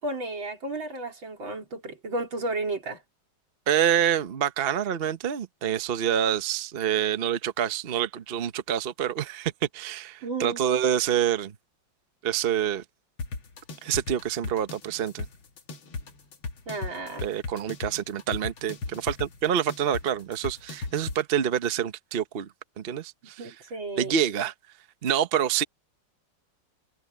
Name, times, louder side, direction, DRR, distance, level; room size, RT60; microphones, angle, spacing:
voice 1, 0.0-3.0 10.2-10.6 16.7-17.2 23.4-24.1, right 2 dB, 85° right, 4.9 m, -33 dB
voice 2, 3.7-11.5 12.2-12.8 13.8-15.3 17.2-22.5 22.8-23.5 24.0-24.5 25.0-25.6, right 9 dB, 45° right, 0.8 m, -27 dB
sound 1, 13.2-21.2, left 3 dB, 90° left, 2.8 m, -36 dB
open air
omnidirectional pair, 2.1 m